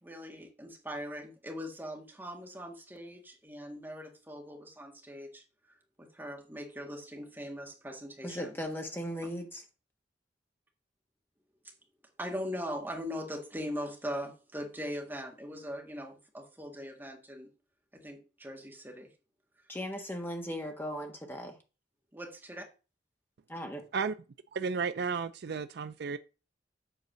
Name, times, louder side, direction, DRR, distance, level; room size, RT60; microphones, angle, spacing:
voice 1, 0.0-5.4 6.0-8.6 12.2-17.5 17.9-19.1 22.1-22.7, equal, 10° right, 1.7 m, -40 dB
voice 2, 8.2-9.6 19.7-21.5 23.5-23.8, equal, 10° left, 1.4 m, -37 dB
voice 3, 24.5-26.2, right 5 dB, 60° right, 0.4 m, -33 dB
8.0 x 4.0 x 6.2 m
head